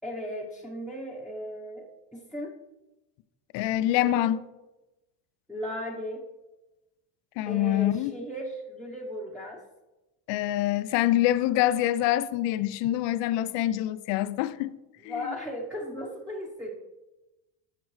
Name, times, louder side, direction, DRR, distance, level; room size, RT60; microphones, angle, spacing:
voice 1, 0.0-1.9 2.1-2.5 3.9-4.2 5.5-6.3 7.5-9.6 15.0-16.7, equal, ahead, 0.9 m, -36 dB
voice 2, 3.5-4.4 7.4-8.1 10.3-14.7 15.0-15.4, left 14 dB, 65° left, 0.6 m, -25 dB
13.5 x 5.1 x 3.2 m
cardioid pair, 130°, 46 cm